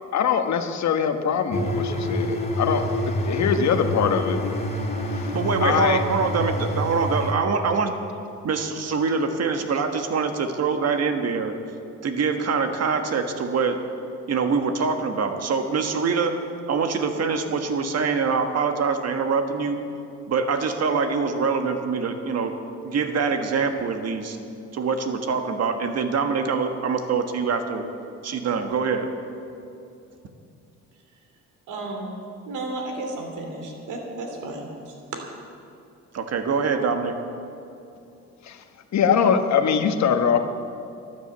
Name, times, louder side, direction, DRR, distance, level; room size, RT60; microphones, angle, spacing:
voice 1, 0.1-2.8 3.1-4.4 5.1-5.3 5.6-6.0 38.4-38.6 38.9-40.4, left 7 dB, 65° left, 7 dB, 1.2 m, -22 dB
sound 1, 1.5-7.3, left 1 dB, 20° left, 2.8 m, -27 dB
voice 2, 5.3-7.9 8.4-11.5 12.0-13.8 14.3-16.4 16.7-19.8 20.3-22.6 22.8-24.4 24.7-27.8 28.2-29.1 36.1-37.1, right 5 dB, 55° right, 6 dB, 1.5 m, -24 dB
voice 3, 31.7-32.1 32.5-35.2, right 2 dB, 80° right, 2 dB, 2.8 m, -33 dB
12.5 x 11.0 x 8.4 m, 2.6 s
cardioid pair, 90°, 30 cm